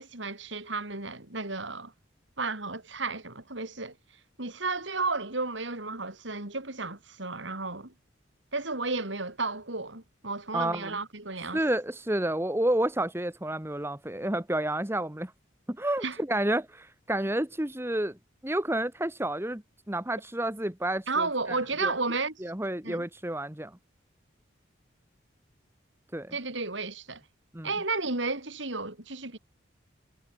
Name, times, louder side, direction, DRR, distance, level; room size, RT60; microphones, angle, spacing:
voice 1, 0.0-1.9 2.4-3.9 4.4-7.9 8.5-11.6 16.0-16.2 21.1-22.3 22.8-23.0 26.3-27.2 27.6-29.4, right 3 dB, 75° right, 4.5 m, -33 dB
voice 2, 10.5-11.0 11.5-15.3 15.7-18.2 18.4-21.9 22.4-23.8 26.1-26.3 27.5-27.7, right 1 dB, 15° right, 1.3 m, -30 dB
head